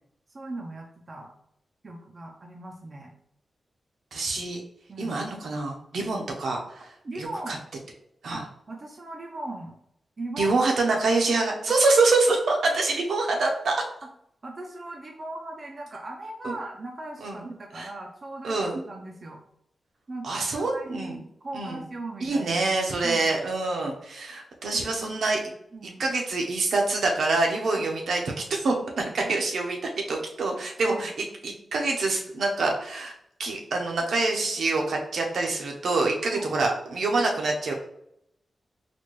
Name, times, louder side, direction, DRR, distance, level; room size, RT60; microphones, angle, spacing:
voice 1, 0.3-1.3 1.8-3.1 4.9-5.2 7.0-7.6 8.3-9.8 10.2-10.5 10.9-11.0 14.0-14.1 14.4-19.4 20.1-22.7 23.0-23.3 24.7-24.8 25.7-26.0 27.8-27.9 29.2-29.4 30.9-31.1 36.3-36.5, right 2 dB, 35° right, 1 dB, 0.4 m, -38 dB
voice 2, 4.1-4.6 5.0-6.8 7.2-7.6 8.2-8.4 10.4-13.8 16.4-16.5 17.2-17.4 17.7-17.9 18.4-18.8 20.2-21.2 21.5-21.8 22.2-25.4 26.0-31.1 31.4-33.1 33.4-37.7, right 3 dB, 70° right, 1 dB, 0.7 m, -26 dB
4.1 x 2.2 x 3.1 m, 0.74 s
wide cardioid pair, 165°, 0 cm